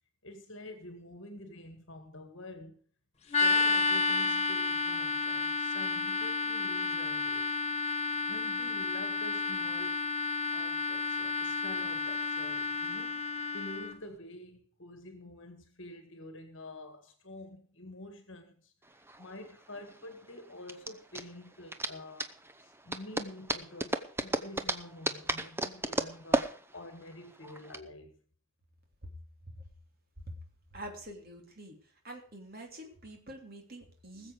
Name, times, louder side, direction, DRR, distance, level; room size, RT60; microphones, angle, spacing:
voice 1, 0.2-2.8 3.2-7.5 8.2-10.0 10.5-22.3 22.6-28.1, left 1 dB, 60° left, 1.8 m, -48 dB
sound 1, 3.3-13.9, left 3 dB, 30° left, 1.3 m, -31 dB
sound 2, 18.9-27.8, right 1 dB, 10° right, 0.7 m, -35 dB
voice 2, 30.7-31.7 32.0-34.3, right 1 dB, 45° right, 3.0 m, -46 dB
20.0 x 7.6 x 5.0 m
head